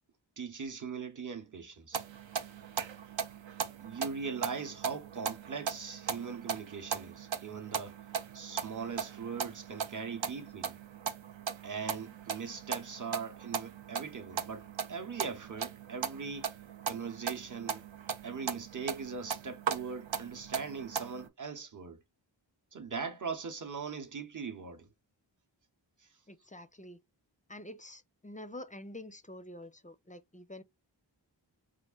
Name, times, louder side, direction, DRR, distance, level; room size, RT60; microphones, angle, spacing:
voice 1, 0.4-2.0 3.8-8.0 8.3-10.8 11.6-16.5 16.9-17.9 18.2-22.0 22.7-24.9, right 5 dB, 40° right, 0.8 m, -40 dB
sound 1, 1.9-21.3, right 6 dB, 75° right, 0.6 m, -39 dB
voice 2, 26.3-27.0 27.5-30.6, left 1 dB, 20° left, 0.4 m, -47 dB
4.5 x 2.4 x 2.3 m
wide cardioid pair, 40°, 46 cm